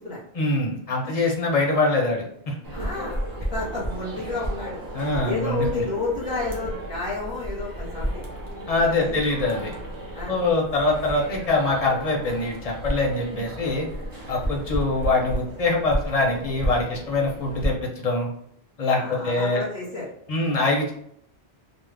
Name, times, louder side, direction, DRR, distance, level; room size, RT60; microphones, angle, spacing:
voice 1, 0.3-2.6 4.9-5.8 8.7-9.7 10.3-13.9 14.3-18.3 18.8-19.6 20.3-20.9, left 2 dB, 45° left, -1 dB, 0.6 m, -24 dB
sound 1, 2.6-17.7, right 1 dB, 30° right, 0.4 m, -33 dB
voice 2, 2.7-4.8 5.2-8.2 8.9-9.1 10.1-10.4 19.0-20.0, left 3 dB, 5° right, -6 dB, 0.9 m, -31 dB
2.4 x 2.0 x 3.2 m, 0.69 s
omnidirectional pair, 1.1 m